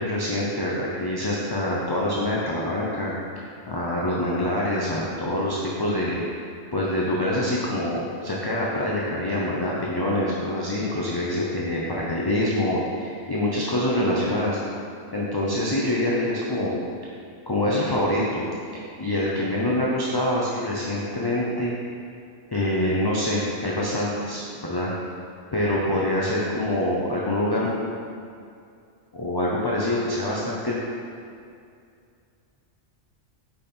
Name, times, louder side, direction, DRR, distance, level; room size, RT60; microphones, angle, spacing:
voice 1, 0.0-3.1 3.7-6.2 6.7-14.6 15.1-16.7 17.5-18.4 19.0-21.7 22.5-24.9 25.5-27.7 29.1-30.8, left 1 dB, 25° left, -5 dB, 0.5 m, -25 dB
5.6 x 5.1 x 4.3 m, 2.4 s
omnidirectional pair, 1.3 m